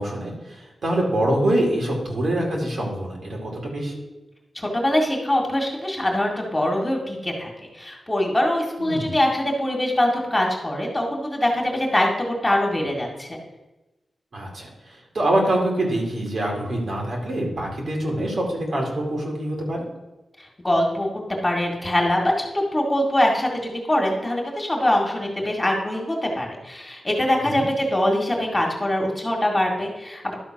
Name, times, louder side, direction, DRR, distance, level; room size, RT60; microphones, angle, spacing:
voice 1, 0.0-4.0 8.8-9.2 14.3-19.8 27.4-27.6, right 1 dB, 65° right, -1 dB, 2.7 m, -25 dB
voice 2, 4.5-13.4 20.4-30.3, left 1 dB, 20° left, 0 dB, 2.0 m, -23 dB
12.0 x 3.9 x 6.0 m, 1.0 s
wide cardioid pair, 85°, 0 cm